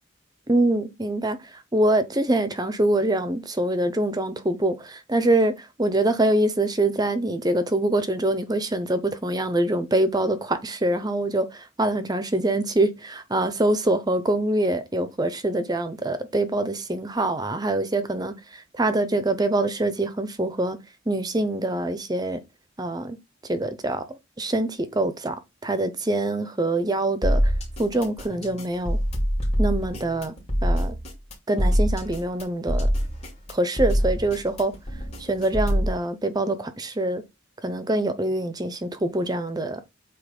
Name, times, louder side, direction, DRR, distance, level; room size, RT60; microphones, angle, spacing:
voice 1, 0.5-1.4 1.7-20.8 21.1-22.4 22.8-23.2 23.5-25.3 25.6-27.5 27.8-29.0 29.6-30.3 30.6-31.0 31.5-32.9 33.5-34.7 35.2-37.2 37.6-39.8, right 1 dB, 20° right, 0.8 m, -24 dB
sound 1, 27.2-35.9, equal, 35° left, 2.6 m, -24 dB
8.2 x 3.2 x 5.3 m
head